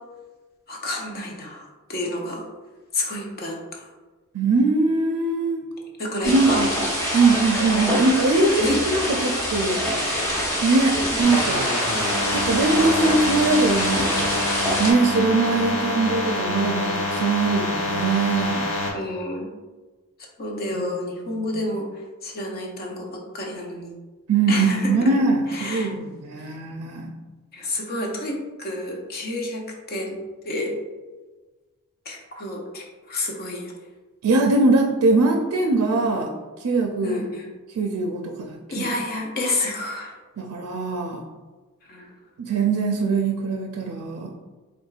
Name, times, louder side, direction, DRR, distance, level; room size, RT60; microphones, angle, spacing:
voice 1, 0.7-1.6 1.9-2.4 2.9-3.8 6.0-6.6 7.7-7.9 8.6-8.8 18.9-19.5 20.4-21.9 22.2-23.9 24.5-25.1 25.5-25.9 27.5-30.2 30.4-30.7 32.1-33.7 37.0-37.5 38.7-40.1 41.9-42.1, left 1 dB, 45° left, 0 dB, 0.8 m, -29 dB
voice 2, 4.3-5.6 6.2-6.7 7.1-9.8 10.6-11.7 12.3-14.3 14.8-18.7 20.7-20.9 21.4-21.6 24.3-27.1 34.2-36.3 36.6-37.2 37.7-38.9 40.4-41.2 42.4-44.3, right 3 dB, 85° right, 2 dB, 0.4 m, -22 dB
sound 1, 6.2-14.9, equal, 15° left, 1.0 m, -25 dB
sound 2, 11.2-18.9, left 2 dB, 65° left, 1.1 m, -26 dB
4.3 x 3.4 x 2.4 m, 1.3 s
head